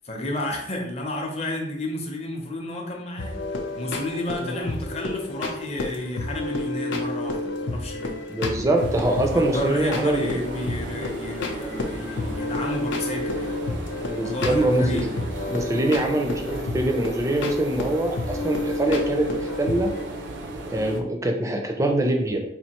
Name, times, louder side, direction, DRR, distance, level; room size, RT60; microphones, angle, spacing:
voice 1, 0.0-3.4 3.7-8.2 9.3-13.5 14.2-15.3, left 1 dB, 35° left, 0 dB, 0.6 m, -31 dB
sound 1, 3.2-20.0, left 2 dB, 75° left, 0.5 m, -31 dB
voice 2, 8.3-10.4 14.1-15.0 15.5-19.9 20.7-22.4, right 1 dB, 15° right, 3 dB, 0.4 m, -24 dB
sound 2, 8.8-21.0, right 1 dB, 75° right, 0.5 m, -36 dB
4.3 x 2.4 x 2.9 m, 0.77 s
head